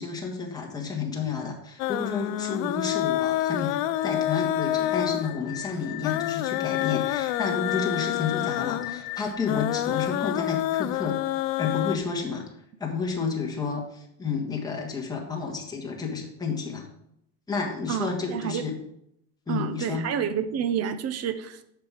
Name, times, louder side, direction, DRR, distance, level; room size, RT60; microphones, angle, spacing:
voice 1, 0.0-11.2 11.6-12.4 12.8-16.9 17.5-18.8 19.5-20.1, left 5 dB, 10° left, -1 dB, 1.5 m, -31 dB
sound 1, 1.8-12.0, left 14 dB, 65° left, 0.6 m, -28 dB
sound 2, 3.9-10.8, left 19 dB, 85° left, 0.9 m, -39 dB
voice 2, 17.9-18.6 19.5-21.6, right 8 dB, 30° right, 12 dB, 0.6 m, -29 dB
7.5 x 6.0 x 4.9 m, 0.76 s
supercardioid pair, 140°, 49 cm